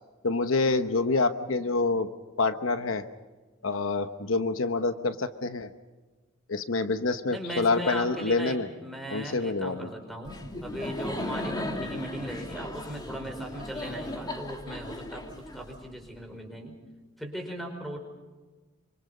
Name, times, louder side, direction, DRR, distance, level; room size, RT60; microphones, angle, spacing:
voice 1, 0.2-2.1 2.4-3.0 3.6-5.7 6.5-8.7 9.1-9.9, left 3 dB, 80° left, 10 dB, 1.1 m, -27 dB
voice 2, 7.3-16.7 17.2-18.0, right 1 dB, ahead, 3 dB, 5.0 m, -38 dB
Laughter, 10.3-16.1, left 1 dB, 20° left, 2.1 m, -36 dB
26.0 x 25.5 x 5.5 m, 1.3 s
head